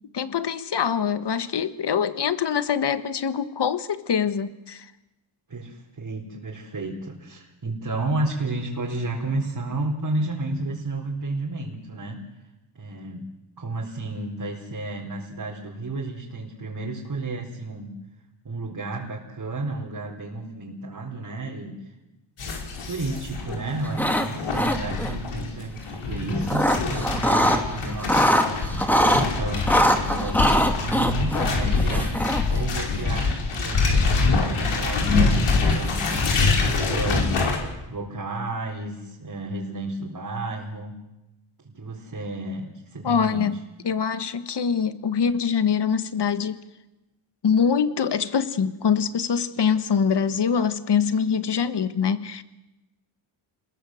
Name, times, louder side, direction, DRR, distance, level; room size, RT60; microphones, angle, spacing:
voice 1, 0.1-4.9 43.0-43.6 43.8-46.6 47.4-52.4, left 7 dB, 55° left, 12 dB, 1.5 m, -24 dB
voice 2, 5.5-12.2 12.7-13.3 13.6-18.0 18.4-21.9 22.8-28.4 28.7-36.0 36.4-37.4 37.9-41.0 41.6-43.5, right 2 dB, 40° right, -2 dB, 4.2 m, -32 dB
sound 1, 22.4-37.6, left 3 dB, 80° left, 5.3 m, -25 dB
sound 2, 23.9-24.3 24.5-25.1 26.1-27.6 27.9-29.2 29.7-32.6, equal, 5° left, 2.6 m, -22 dB
28.0 x 20.5 x 7.8 m, 1.0 s
cardioid pair, 95°, 50 cm